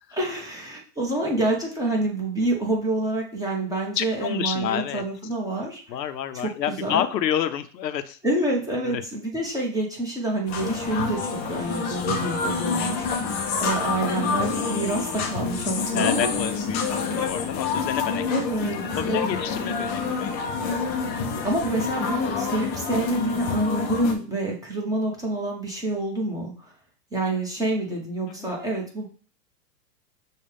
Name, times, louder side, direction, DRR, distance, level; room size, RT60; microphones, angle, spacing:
voice 1, 0.1-6.0 6.3-7.0 8.2-16.3 18.3-19.4 21.4-26.7 27.1-29.1, right 2 dB, 5° right, -2 dB, 1.0 m, -27 dB
voice 2, 4.0-5.0 5.9-8.2 8.8-9.0 12.6-13.1 15.9-18.2 19.0-20.9 28.3-28.5, left 10 dB, 85° left, 10 dB, 0.7 m, -29 dB
sound 1, 10.5-24.2, left 5 dB, 20° left, 0.4 m, -27 dB
6.4 x 2.3 x 3.4 m, 0.41 s
hypercardioid pair, 120°, 49 cm